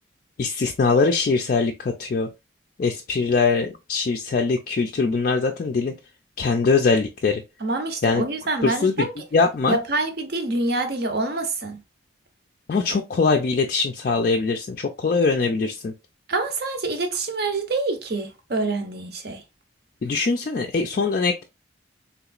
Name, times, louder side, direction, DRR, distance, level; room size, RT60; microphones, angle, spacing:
voice 1, 0.4-2.3 2.8-5.9 6.4-7.4 8.0-8.3 8.6-9.8 12.7-15.9 20.0-21.4, left 4 dB, 45° left, 0.3 m, -22 dB
voice 2, 7.6-9.1 9.7-11.8 16.3-19.4, right 2 dB, 55° right, 0.7 m, -26 dB
3.5 x 2.9 x 2.3 m
head